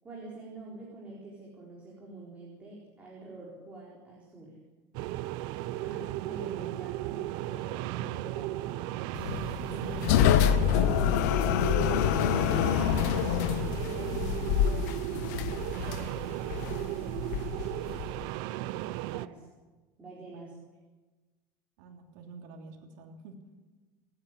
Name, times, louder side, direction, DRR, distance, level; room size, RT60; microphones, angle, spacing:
voice 1, 0.0-4.6 5.8-11.8 19.1-19.5 20.0-20.5, right 2 dB, 15° right, -5 dB, 4.4 m, -47 dB
sound 1, 4.9-19.3, right 16 dB, 55° right, 0.7 m, -35 dB
sound 2, 9.2-18.3, left 10 dB, 80° left, 1.1 m, -27 dB
voice 2, 13.7-15.4 15.7-17.3 20.3-20.5 21.8-23.4, right 4 dB, 85° right, 1 dB, 3.2 m, -47 dB
29.0 x 10.0 x 10.0 m, 1.2 s
cardioid pair, 180°, 9 cm